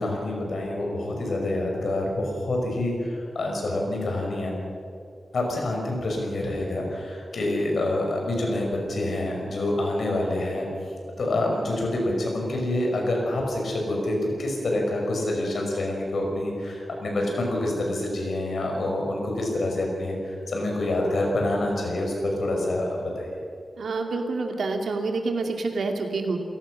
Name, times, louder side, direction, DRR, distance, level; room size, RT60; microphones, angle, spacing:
voice 1, 0.0-4.5 5.3-10.7 11.2-23.3, left 1 dB, 65° left, 0 dB, 6.0 m, -27 dB
voice 2, 23.8-26.4, right 3 dB, 85° right, 3 dB, 2.5 m, -27 dB
28.0 x 17.5 x 6.5 m, 2.4 s
wide cardioid pair, 175°, 0 cm